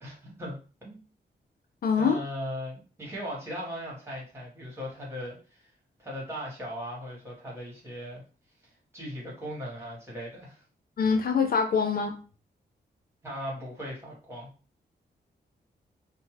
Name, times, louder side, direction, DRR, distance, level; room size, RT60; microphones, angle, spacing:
voice 1, 0.0-0.6 0.8-1.0 1.9-5.7 6.0-8.2 8.9-10.6 13.2-14.5, equal, 15° right, -4 dB, 1.4 m, -38 dB
voice 2, 1.8-2.2 11.0-12.1, left 5 dB, 55° left, 5 dB, 0.4 m, -24 dB
2.7 x 2.1 x 3.1 m, 0.36 s
wide cardioid pair, 115°, 18 cm